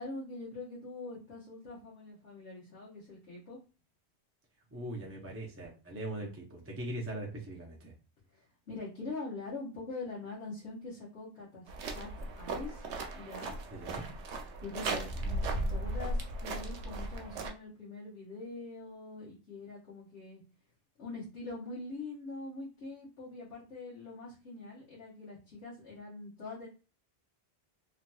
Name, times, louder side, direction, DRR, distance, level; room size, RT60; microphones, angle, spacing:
voice 1, 0.0-3.6 8.3-12.9 13.1-13.5 14.6-20.4 21.0-26.7, left 3 dB, 80° left, -8 dB, 1.4 m, -44 dB
voice 2, 4.7-7.9 13.7-14.1, right 1 dB, 20° right, -1 dB, 0.5 m, -40 dB
sound 1, 11.7-17.5, right 2 dB, 85° right, 0.9 m, -36 dB
3.1 x 2.8 x 2.2 m, 0.33 s
omnidirectional pair, 1.1 m